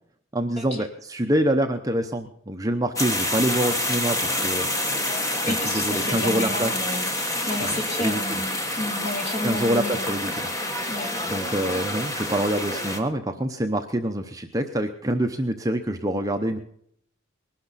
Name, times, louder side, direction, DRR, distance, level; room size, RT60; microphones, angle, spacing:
voice 1, 0.3-4.7 5.4-6.7 7.6-8.4 9.4-10.5 11.3-16.6, right 1 dB, 15° right, 5 dB, 0.8 m, -26 dB
sound 1, 3.0-13.0, left 1 dB, 15° left, 1.4 m, -27 dB
voice 2, 5.4-10.1 10.9-11.1, left 1 dB, 35° left, 1 dB, 3.0 m, -31 dB
21.0 x 12.0 x 4.1 m, 0.66 s
head